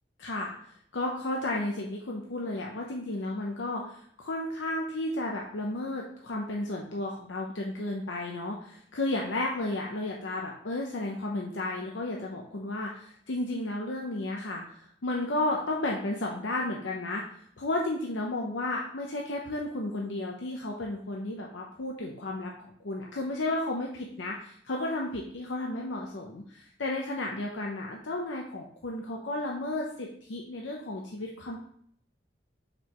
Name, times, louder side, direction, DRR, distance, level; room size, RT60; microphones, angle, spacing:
voice 1, 0.2-17.2 17.6-31.6, left 2 dB, 85° left, -1 dB, 0.7 m, -33 dB
6.2 x 5.2 x 3.1 m, 0.64 s
head